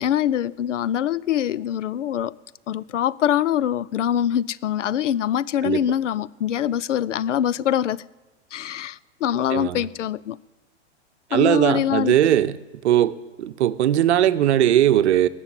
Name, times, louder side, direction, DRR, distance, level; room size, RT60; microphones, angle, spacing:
voice 1, 0.0-2.3 2.7-8.0 8.5-10.4 11.3-12.1, left 10 dB, 80° left, 0.6 m, -24 dB
voice 2, 9.5-9.9 11.3-12.6 12.8-15.3, right 11 dB, 65° right, 0.8 m, -19 dB
19.0 x 7.1 x 8.8 m
hypercardioid pair, 110°, 36 cm